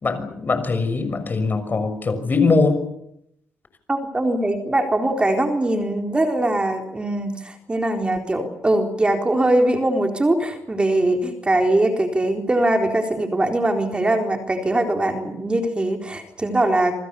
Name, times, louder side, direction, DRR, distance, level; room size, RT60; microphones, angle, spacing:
voice 1, 0.0-2.8, left 4 dB, 35° left, 10 dB, 6.2 m, -21 dB
voice 2, 3.9-16.9, right 1 dB, 20° right, 4 dB, 4.0 m, -21 dB
28.0 x 25.0 x 7.0 m, 0.76 s
cardioid pair, 100°, 5 cm